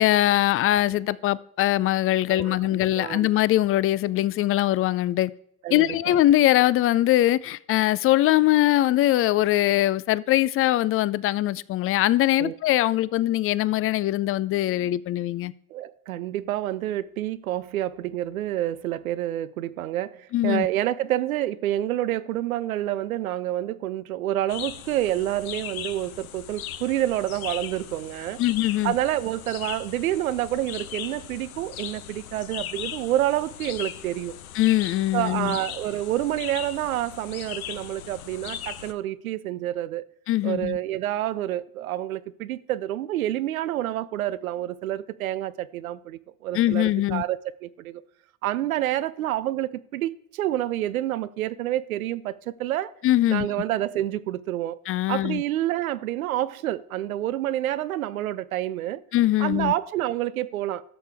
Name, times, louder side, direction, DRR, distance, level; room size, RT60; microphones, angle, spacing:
voice 1, 0.0-5.3 5.7-15.5 20.3-20.7 28.4-28.9 34.6-35.6 40.3-40.8 46.5-47.2 53.0-53.5 54.9-55.4 59.1-59.7, left 15 dB, 35° left, 0.4 m, -22 dB
voice 2, 2.3-3.3 5.6-6.2 12.4-12.6 15.7-28.4 28.8-34.3 35.1-40.1 40.4-48.0 48.4-52.9 53.3-54.8 55.1-59.0 59.4-60.8, right 13 dB, 90° right, 0.5 m, -28 dB
sound 1, 24.5-38.9, left 10 dB, 90° left, 0.7 m, -38 dB
14.0 x 6.6 x 3.4 m
hypercardioid pair, 70°, 41 cm